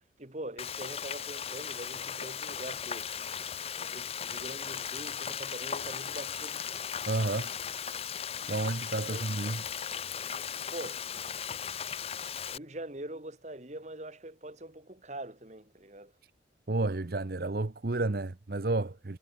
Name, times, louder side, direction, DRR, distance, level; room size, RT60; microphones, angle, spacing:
voice 1, 0.2-3.1 3.9-6.6 9.1-9.3 10.7-11.1 12.5-16.1, right 1 dB, 40° right, 2.1 m, -43 dB
Frying (food), 0.6-12.6, left 8 dB, 35° left, 0.7 m, -37 dB
voice 2, 7.1-7.5 8.5-9.6 16.7-19.2, right 2 dB, 55° right, 0.8 m, -31 dB
head